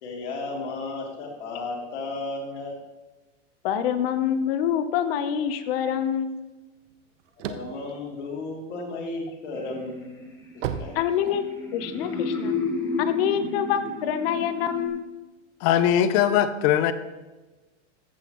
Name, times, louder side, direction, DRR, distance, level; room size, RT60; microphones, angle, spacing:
voice 1, 0.0-2.7 7.4-10.2 10.5-10.9, left 3 dB, 70° left, 2.9 m, -34 dB
voice 2, 3.6-6.4 10.9-11.4 11.7-12.6 13.0-15.2, left 9 dB, 50° left, 0.9 m, -26 dB
sound 1, 6.9-9.1 9.6-11.8, right 8 dB, 75° right, 0.9 m, -34 dB
sound 2, 9.5-14.9, left 3 dB, 10° left, 1.5 m, -32 dB
voice 3, 15.6-16.9, left 10 dB, 30° left, 0.4 m, -20 dB
14.5 x 8.0 x 3.0 m
supercardioid pair, 145°, 37 cm